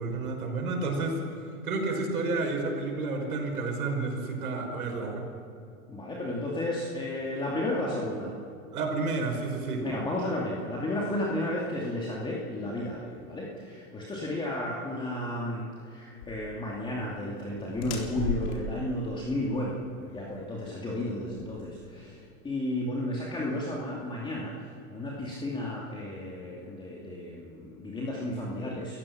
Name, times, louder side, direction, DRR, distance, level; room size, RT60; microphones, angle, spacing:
voice 1, 0.0-5.3 8.7-9.9, right 3 dB, 85° right, 2 dB, 5.3 m, -31 dB
voice 2, 5.9-8.3 9.8-24.5 24.9-29.0, left 1 dB, 10° left, -4 dB, 2.5 m, -33 dB
sound 1, 16.2-22.3, left 4 dB, 50° left, 4.0 m, -39 dB
28.5 x 15.0 x 6.0 m, 2.6 s
hypercardioid pair, 135°, 43 cm